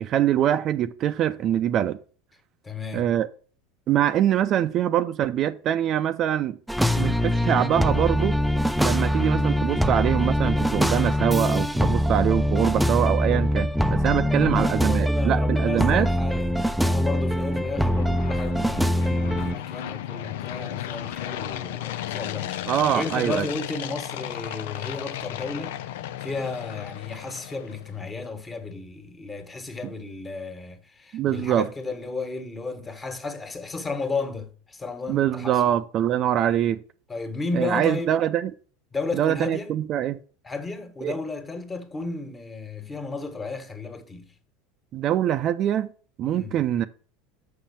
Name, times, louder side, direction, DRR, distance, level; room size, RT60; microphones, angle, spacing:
voice 1, 0.0-2.0 2.9-3.3 3.9-6.6 7.0-8.4 8.8-16.1 22.7-23.5 31.1-31.7 35.1-36.8 37.5-38.5 39.1-40.2 41.0-41.1 44.9-45.9 46.2-46.8, right 10 dB, 45° right, 0.5 m, -24 dB
voice 2, 2.6-3.1 14.1-25.8 26.2-35.8 37.1-38.1 38.9-39.7 40.4-44.3 46.2-46.6, left 3 dB, 20° left, 1.6 m, -33 dB
sound 1, 6.7-19.6, equal, 5° right, 0.5 m, -23 dB
sound 2, 15.6-27.9, left 12 dB, 75° left, 0.5 m, -35 dB
6.3 x 5.7 x 7.2 m
hypercardioid pair, 85°, 0 cm